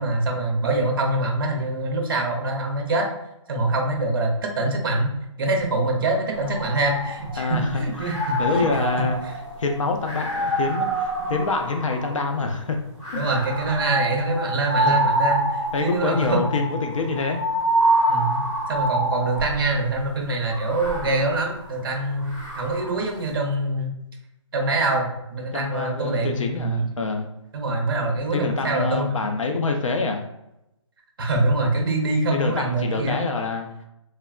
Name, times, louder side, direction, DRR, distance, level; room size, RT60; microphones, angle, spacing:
voice 1, 0.0-3.1 3.5-5.1 5.4-8.8 9.2-9.3 11.2-11.3 13.2-16.6 18.1-18.4 18.7-23.9 24.5-26.9 27.5-29.2 31.2-33.2, right 2 dB, 45° right, 2 dB, 0.6 m, -24 dB
sound 1, 6.4-7.5 7.9-12.3 13.0-19.7 20.5-23.1, right 1 dB, 15° left, 0.5 m, -26 dB
voice 2, 7.4-8.1 8.4-9.2 9.6-12.8 13.1-13.3 14.9-15.0 15.7-17.4 25.5-27.3 28.3-30.2 32.3-33.7, left 3 dB, 90° left, 4 dB, 0.5 m, -26 dB
3.3 x 2.2 x 2.3 m, 0.85 s
hypercardioid pair, 170°, 16 cm